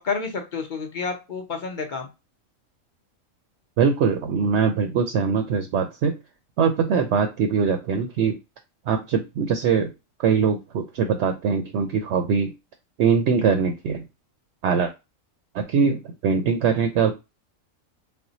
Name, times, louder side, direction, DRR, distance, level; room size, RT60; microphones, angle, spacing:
voice 1, 0.0-2.1, left 5 dB, 45° left, 3 dB, 0.7 m, -29 dB
voice 2, 3.8-6.1 6.6-8.4 8.9-9.9 10.2-12.5 13.0-14.0 14.6-14.9 15.5-17.1, right 6 dB, 65° right, 5 dB, 0.8 m, -22 dB
4.2 x 2.1 x 3.9 m, 0.25 s
omnidirectional pair, 1.4 m